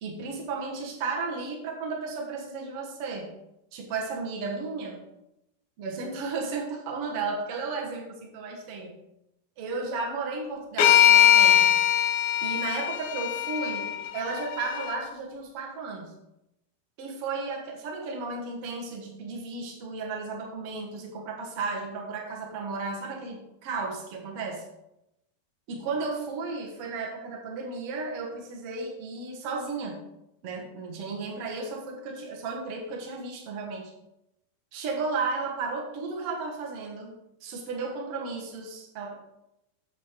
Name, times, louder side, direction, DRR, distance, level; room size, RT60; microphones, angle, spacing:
voice 1, 0.0-3.3 3.7-5.0 5.8-9.0 9.6-11.7 12.4-16.1 17.0-24.6 25.7-30.0 30.4-33.9 34.7-37.1 37.4-39.1, right 4 dB, 80° right, 0 dB, 1.3 m, -34 dB
sound 1, 10.8-15.0, left 11 dB, 85° left, 2.8 m, -21 dB
8.5 x 7.2 x 3.7 m, 0.86 s
omnidirectional pair, 4.9 m